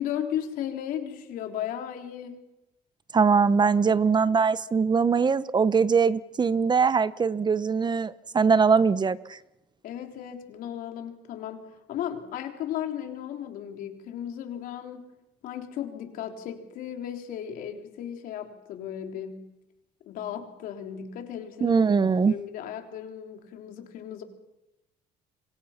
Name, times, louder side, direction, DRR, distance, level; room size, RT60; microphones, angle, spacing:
voice 1, 0.0-2.4 9.8-15.1 15.4-19.5 20.1-21.8 22.3-24.2, left 10 dB, 75° left, 4 dB, 3.7 m, -35 dB
voice 2, 3.1-9.4 21.6-22.3, right 5 dB, 30° right, 16 dB, 1.0 m, -22 dB
27.0 x 25.5 x 5.9 m, 0.93 s
supercardioid pair, 85°, 15 cm